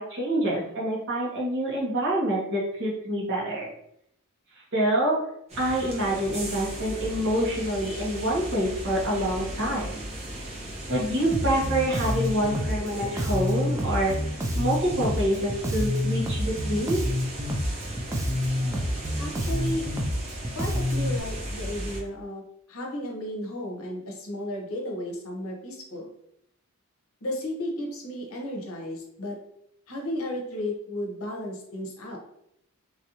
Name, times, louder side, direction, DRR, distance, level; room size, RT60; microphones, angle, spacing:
voice 1, 0.0-3.7 4.7-5.2 5.6-9.8 10.9-14.2 14.5-17.0, right 1 dB, 60° right, -4 dB, 1.2 m, -26 dB
sound 1, 5.5-22.0, right 1 dB, 30° right, 0.9 m, -37 dB
Bass guitar, 11.3-21.2, equal, 15° right, 0.3 m, -28 dB
voice 2, 19.2-19.8 20.5-22.4 22.7-26.1 27.2-29.4 29.9-32.2, left 1 dB, 70° left, 0 dB, 0.8 m, -33 dB
3.1 x 2.6 x 2.8 m, 0.74 s
head